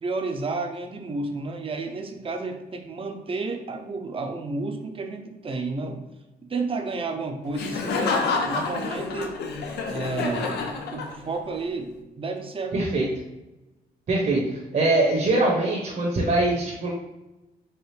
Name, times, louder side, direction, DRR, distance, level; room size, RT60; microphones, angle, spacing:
voice 1, 0.0-6.0 6.5-9.4 9.9-10.6 10.9-13.1, right 3 dB, 35° right, 4 dB, 0.6 m, -31 dB
Laughter, 7.5-11.5, left 4 dB, 90° left, 0.6 m, -28 dB
voice 2, 12.7-13.1 14.1-16.9, right 2 dB, 55° right, -3 dB, 1.0 m, -23 dB
4.6 x 2.4 x 3.3 m, 1.0 s
cardioid pair, 85°, 17 cm